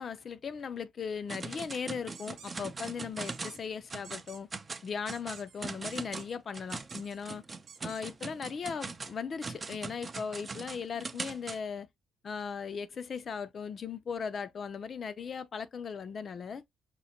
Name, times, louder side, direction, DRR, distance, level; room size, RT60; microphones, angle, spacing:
voice 1, 0.0-4.5 4.8-7.4 7.8-11.9 12.2-16.6, left 6 dB, 50° left, 0.4 m, -38 dB
sound 1, 1.3-3.6 3.9-4.3 4.5-11.6, right 4 dB, 30° right, 0.5 m, -41 dB
sound 2, 2.1-2.5 3.2-3.6 4.0-4.4 5.1-5.6 5.9-6.3 6.7-7.2 7.7-8.0, right 6 dB, 65° right, 0.8 m, -51 dB
5.1 x 2.1 x 2.7 m
cardioid pair, 90°, 0 cm